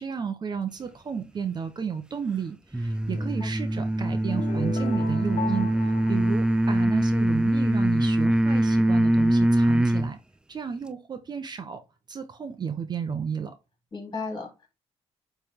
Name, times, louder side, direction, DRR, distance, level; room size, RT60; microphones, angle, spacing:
voice 1, 0.0-10.2 10.5-11.8 12.1-13.5, right 6 dB, 35° right, 0.9 m, -33 dB
sound 1, 2.7-10.1, right 1 dB, 5° right, 0.4 m, -23 dB
voice 2, 3.1-3.5 13.9-14.7, left 4 dB, 35° left, 4.1 m, -36 dB
sound 2, 4.3-7.3, left 5 dB, 65° left, 1.1 m, -37 dB
8.8 x 3.4 x 3.6 m
cardioid pair, 120°, 12 cm